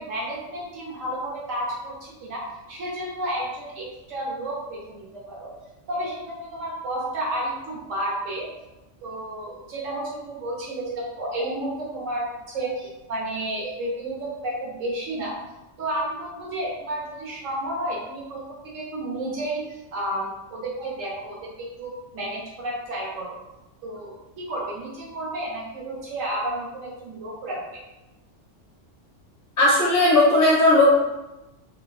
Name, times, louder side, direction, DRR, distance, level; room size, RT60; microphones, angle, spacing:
voice 1, 0.0-1.9 2.2-5.5 5.9-8.5 9.0-15.3 15.8-18.5 18.7-23.4 23.8-27.8, right 1 dB, 90° right, -4 dB, 1.2 m, -31 dB
voice 2, 29.6-31.0, left 2 dB, 55° left, -5 dB, 0.8 m, -17 dB
2.8 x 2.2 x 2.4 m, 0.96 s
omnidirectional pair, 1.3 m